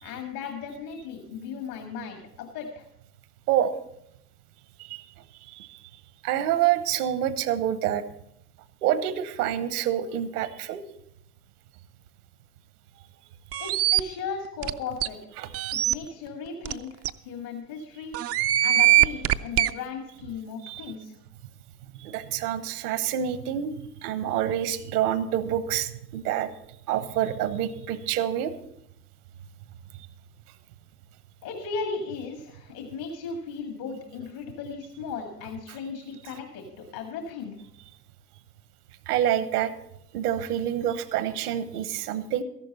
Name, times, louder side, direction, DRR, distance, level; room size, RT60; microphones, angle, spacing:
voice 1, 0.0-2.9 13.6-15.2 15.7-18.2 18.6-21.1 31.4-37.6, left 5 dB, 65° left, 3 dB, 2.1 m, -36 dB
voice 2, 5.5-5.8 6.2-8.0 8.8-10.8 15.4-15.5 20.6-20.9 22.0-23.7 24.0-26.5 26.9-28.5 39.1-39.7 40.1-42.4, right 10 dB, 70° right, 13 dB, 1.1 m, -27 dB
sound 1, 13.5-14.0 14.6-14.7 15.0-15.1 15.5-15.9 16.7-16.8 17.1-17.2 18.1-19.7, right 14 dB, 35° right, 0.4 m, -21 dB
14.0 x 11.5 x 4.2 m, 0.78 s
hypercardioid pair, 75°, 47 cm